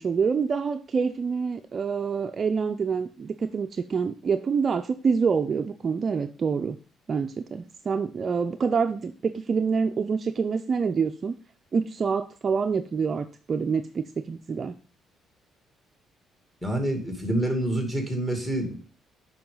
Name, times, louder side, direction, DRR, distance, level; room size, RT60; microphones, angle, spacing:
voice 1, 0.0-6.8 7.1-11.3 11.7-14.8, right 5 dB, 35° right, 7 dB, 0.5 m, -26 dB
voice 2, 16.6-18.8, right 1 dB, 5° left, 3 dB, 2.4 m, -27 dB
8.7 x 5.7 x 3.8 m, 0.40 s
cardioid pair, 120°, 0 cm